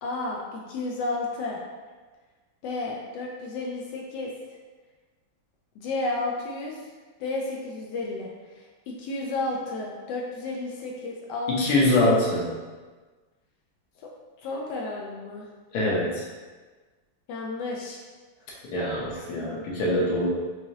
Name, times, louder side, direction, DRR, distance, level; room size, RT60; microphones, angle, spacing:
voice 1, 0.0-1.6 2.6-4.3 5.8-6.9 7.2-11.9 14.0-14.1 14.4-15.5 17.3-18.0, left 2 dB, 85° left, -2 dB, 0.9 m, -32 dB
voice 2, 11.5-12.5 15.7-16.2 18.7-20.3, left 1 dB, 60° left, -4 dB, 1.2 m, -23 dB
4.7 x 2.7 x 2.7 m, 1.3 s
omnidirectional pair, 2.4 m